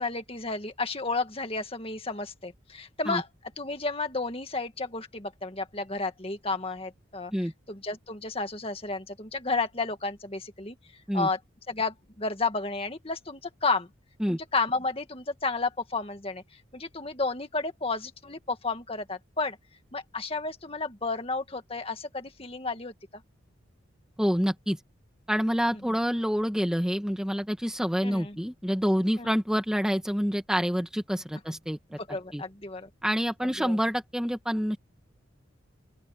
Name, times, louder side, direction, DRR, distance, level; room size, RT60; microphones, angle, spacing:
voice 1, 0.0-3.3 3.6-7.3 7.7-10.8 11.1-11.4 11.7-13.9 14.3-16.4 16.7-19.6 19.9-22.9 25.7-25.8 28.0-28.4 29.2-29.3 32.1-32.9 33.6-33.8, left 3 dB, 30° left, 2.0 m, -32 dB
voice 2, 24.2-24.8 25.3-32.0 32.3-32.4 33.0-34.8, equal, 5° right, 1.4 m, -27 dB
open air
head